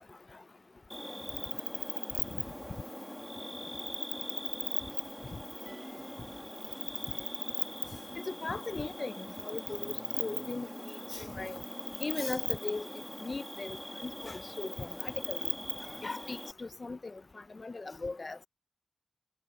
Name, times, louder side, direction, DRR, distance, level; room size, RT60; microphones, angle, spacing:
Cricket, 0.9-16.5, equal, 5° left, 1.2 m, -39 dB
voice 1, 1.0-3.5, right 5 dB, 80° right, 6.7 m, -62 dB
sound 1, 5.7-6.5 7.1-8.7 9.8-14.0 14.3-14.4, right 2 dB, 30° right, 1.5 m, -55 dB
voice 2, 8.3-9.9 10.2-10.7 11.1-11.6 12.0-12.9 13.2-13.8 14.0-15.4 16.0-17.1 17.5-18.4, left 3 dB, 40° left, 0.6 m, -38 dB
wide cardioid pair, 120°, 0 cm